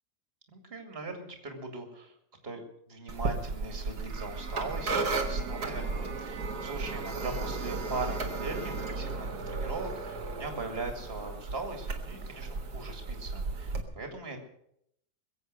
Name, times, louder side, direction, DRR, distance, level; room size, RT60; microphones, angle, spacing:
voice 1, 0.5-2.1 2.4-14.4, right 3 dB, 35° right, 4 dB, 2.5 m, -40 dB
sound 1, 3.1-13.8, right 3 dB, 70° right, 2.1 m, -34 dB
21.5 x 8.2 x 6.4 m, 0.74 s
omnidirectional pair, 1.7 m